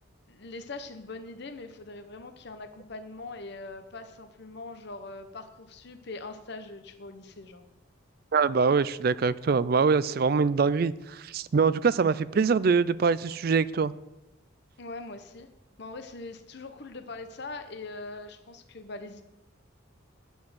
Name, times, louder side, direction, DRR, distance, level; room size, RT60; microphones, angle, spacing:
voice 1, 0.3-7.6 14.8-15.5 15.8-19.2, left 3 dB, 55° left, 8 dB, 0.9 m, -42 dB
voice 2, 8.3-13.9, right 5 dB, 50° right, 18 dB, 0.4 m, -24 dB
9.9 x 6.4 x 8.0 m, 0.98 s
head